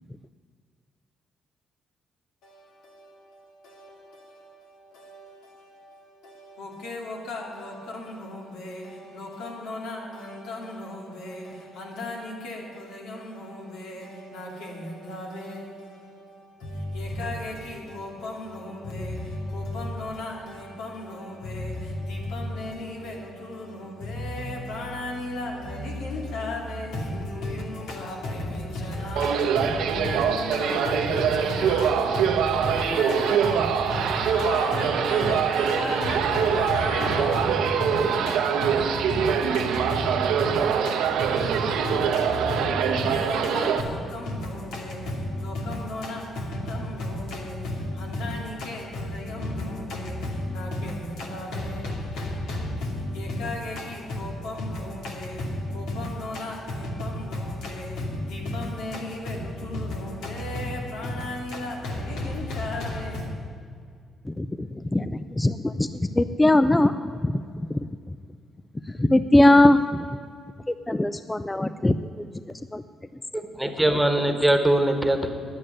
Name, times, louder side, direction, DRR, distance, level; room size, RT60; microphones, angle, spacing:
voice 1, 2.4-63.4, left 1 dB, 90° left, -1 dB, 2.6 m, -33 dB
sound 1, 29.2-43.8, right 7 dB, 85° right, 1.0 m, -24 dB
voice 2, 64.4-67.0 67.2-67.3 67.7-67.8 69.0-69.8 70.7-72.2 72.7-72.8, left 1 dB, 15° left, 11 dB, 0.4 m, -20 dB
voice 3, 73.3-75.3, right 1 dB, 5° right, 6 dB, 1.4 m, -22 dB
9.9 x 8.8 x 9.9 m, 2.2 s
cardioid pair, 90°, 0 cm